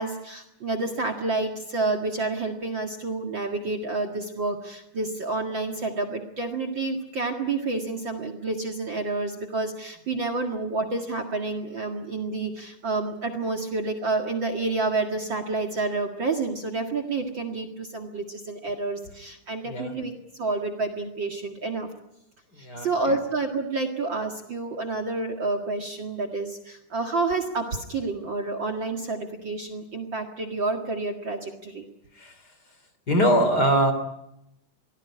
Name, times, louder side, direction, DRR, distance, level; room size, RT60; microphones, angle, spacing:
voice 1, 0.0-20.1 20.4-21.9 22.6-31.9, right 3 dB, 40° right, 9 dB, 2.3 m, -29 dB
voice 2, 19.6-19.9 22.5-22.9 32.1-32.4 33.1-33.9, right 1 dB, 30° left, 8 dB, 3.4 m, -22 dB
23.5 x 18.0 x 9.9 m, 0.83 s
omnidirectional pair, 3.5 m